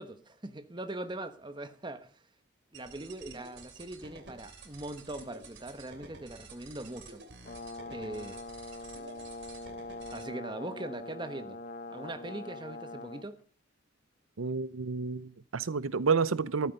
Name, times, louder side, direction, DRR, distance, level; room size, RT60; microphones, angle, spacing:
voice 1, 0.0-2.1 2.7-7.2 7.9-8.4 10.1-11.6 11.9-13.4, right 1 dB, 20° right, 1.2 m, -41 dB
sound 1, 2.7-10.2, right 3 dB, 55° right, 2.9 m, -51 dB
Brass instrument, 7.4-13.3, left 2 dB, 40° left, 1.0 m, -43 dB
voice 2, 14.4-16.7, right 5 dB, 85° right, 0.7 m, -30 dB
14.5 x 13.0 x 5.3 m
head